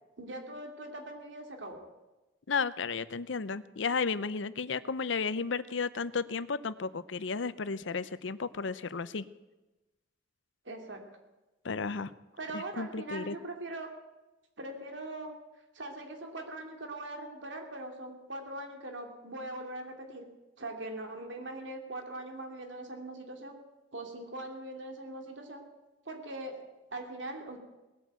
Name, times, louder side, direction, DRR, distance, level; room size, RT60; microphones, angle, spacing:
voice 1, 0.2-1.8 10.6-11.0 12.4-13.9 14.6-15.3 15.7-20.3 20.6-23.6 23.9-25.6 26.1-27.6, right 2 dB, 70° right, 3 dB, 2.6 m, -41 dB
voice 2, 2.5-9.2 11.6-12.1 12.5-13.4, left 5 dB, 70° left, 16 dB, 0.6 m, -33 dB
19.0 x 9.1 x 8.1 m, 1.1 s
head